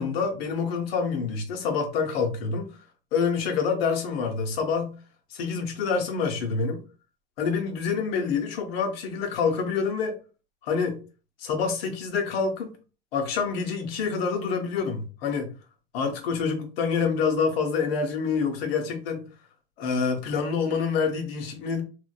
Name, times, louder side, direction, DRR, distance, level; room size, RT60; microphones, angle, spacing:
voice 1, 0.0-2.7 3.1-5.0 5.3-6.8 7.4-10.2 10.6-11.0 11.4-12.7 13.1-15.5 15.9-19.3 19.8-21.8, left 5 dB, 90° left, 0.7 m, -27 dB
2.5 x 2.1 x 2.3 m
supercardioid pair, 90°, 29 cm